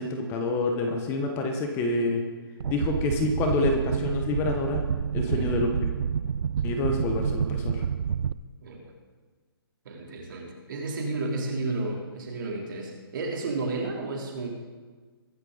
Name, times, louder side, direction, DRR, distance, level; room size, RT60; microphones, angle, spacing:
voice 1, 0.0-2.2 2.7-4.8 5.1-5.9 6.6-7.8, left 3 dB, 20° left, 3 dB, 1.2 m, -27 dB
sound 1, 2.6-8.3, right 7 dB, 75° right, 0.4 m, -28 dB
voice 2, 9.9-14.5, right 3 dB, 55° right, 0 dB, 3.5 m, -32 dB
22.5 x 8.1 x 4.1 m, 1.4 s
hypercardioid pair, 155°, 13 cm